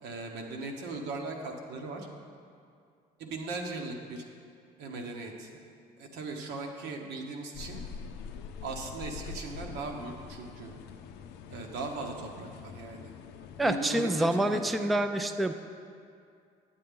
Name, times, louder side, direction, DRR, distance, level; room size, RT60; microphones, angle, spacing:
voice 1, 0.0-2.1 3.2-4.2 4.8-5.5 6.0-7.8 8.6-10.7 11.5-13.1 13.6-15.0, right 3 dB, 80° right, 2 dB, 1.2 m, -38 dB
sound 1, 7.5-13.8, left 6 dB, 85° left, 0.5 m, -44 dB
voice 2, 13.6-15.5, right 1 dB, ahead, 7 dB, 0.3 m, -27 dB
9.1 x 8.6 x 3.7 m, 2.3 s
cardioid pair, 110°, 17 cm